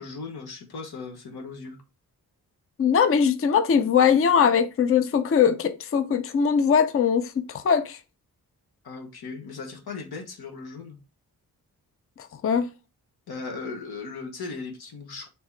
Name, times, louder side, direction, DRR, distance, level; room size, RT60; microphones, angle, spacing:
voice 1, 0.0-1.8 8.8-11.0 13.3-15.3, left 4 dB, 85° left, 1.1 m, -37 dB
voice 2, 2.8-8.0 12.4-12.7, left 7 dB, 40° left, 0.5 m, -21 dB
3.5 x 2.9 x 4.4 m
cardioid pair, 50°, 37 cm